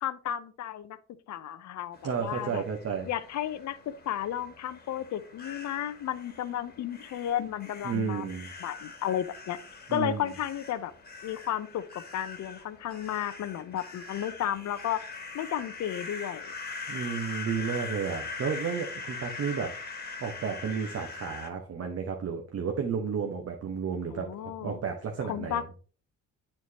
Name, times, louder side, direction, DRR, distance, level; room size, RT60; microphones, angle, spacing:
voice 1, 0.0-1.0 1.3-2.6 3.1-3.8 4.1-8.3 8.6-9.6 9.9-10.9 11.2-11.8 12.1-15.0 15.3-16.5 24.1-24.8 25.3-25.6, left 11 dB, 65° left, 12 dB, 0.7 m, -33 dB
sound 1, 1.9-21.5, left 4 dB, 30° left, 1.5 m, -42 dB
voice 2, 2.0-3.1 7.8-8.5 9.9-10.3 16.9-25.6, right 6 dB, 55° right, 3 dB, 1.1 m, -32 dB
9.7 x 4.5 x 2.8 m, 0.40 s
cardioid pair, 90°, 30 cm